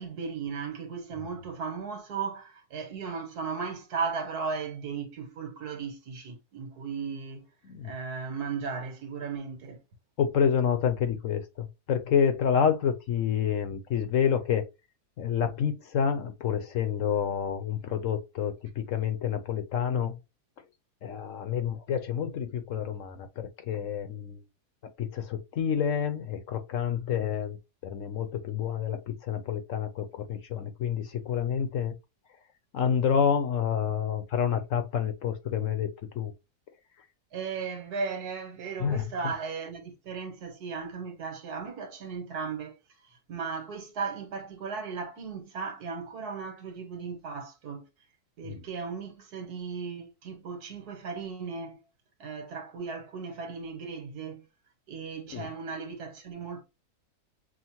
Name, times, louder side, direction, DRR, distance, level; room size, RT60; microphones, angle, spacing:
voice 1, 0.0-7.4 7.8-9.8 37.3-42.8 43.3-47.8 48.4-51.8 52.2-54.5 54.9-56.6, right 5 dB, 85° right, 1.7 m, -36 dB
voice 2, 10.2-14.7 15.2-20.2 21.0-24.4 25.0-27.6 27.8-31.9 32.7-35.9 36.1-36.3 38.8-39.3 48.4-48.6 55.3-55.5, left 8 dB, 60° left, 1.0 m, -28 dB
6.2 x 2.2 x 2.9 m
omnidirectional pair, 1.6 m